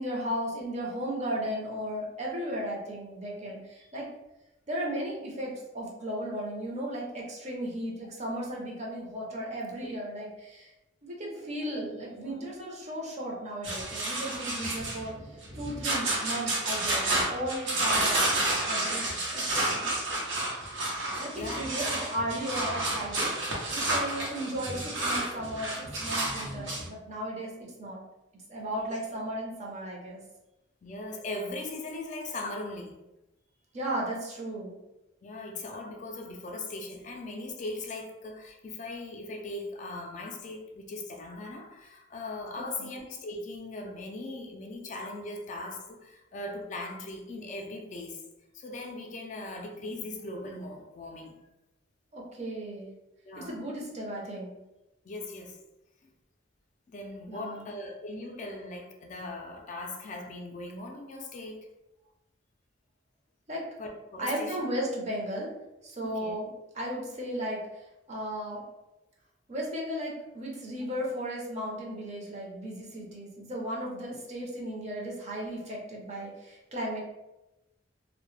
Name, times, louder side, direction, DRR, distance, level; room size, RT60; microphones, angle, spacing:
voice 1, 0.0-4.1 4.7-10.7 11.0-15.1 15.6-19.5 21.2-23.3 23.7-25.7 26.0-28.0 28.5-30.2 33.7-34.7 42.5-42.9 52.1-52.9 53.4-54.6 57.3-57.7 63.5-63.6 64.2-65.5 65.8-66.5 66.7-67.6 68.1-68.6 69.5-77.0, equal, 40° right, -3 dB, 0.6 m, -35 dB
voice 2, 12.1-12.6 19.6-19.9 21.3-21.9 28.7-28.9 30.8-33.0 35.2-48.2 48.5-51.4 53.2-53.6 55.0-55.6 56.0-56.1 56.9-61.7 63.8-64.6 66.0-66.4, left 2 dB, 40° left, 1 dB, 0.3 m, -39 dB
sound 1, 13.6-26.9, right 2 dB, 85° right, 0.7 m, -30 dB
2.1 x 2.0 x 3.1 m, 0.97 s
head